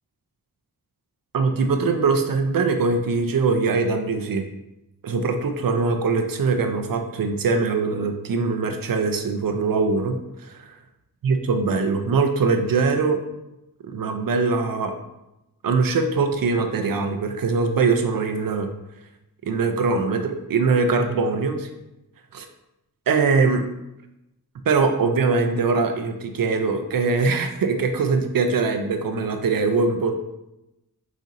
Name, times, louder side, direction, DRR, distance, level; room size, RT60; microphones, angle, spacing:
voice 1, 1.3-4.4 5.0-10.7 11.2-13.2 13.8-15.0 15.6-18.7 19.4-21.7 22.3-22.5 23.1-23.6 24.7-30.2, right 4 dB, 65° right, 6 dB, 0.5 m, -22 dB
5.1 x 4.0 x 2.5 m, 0.91 s
wide cardioid pair, 170°, 37 cm